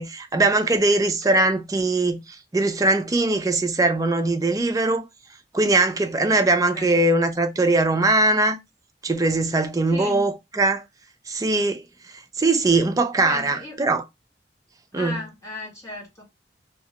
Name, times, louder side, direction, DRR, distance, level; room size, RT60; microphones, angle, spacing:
voice 1, 0.0-5.1 5.5-8.6 9.0-10.8 11.3-11.8 12.4-14.0 14.9-15.2, right 2 dB, 20° right, 0.4 m, -21 dB
voice 2, 6.4-7.0 9.9-10.3 13.2-13.8 14.9-16.2, left 2 dB, 15° left, 1.1 m, -36 dB
2.8 x 2.2 x 2.8 m
head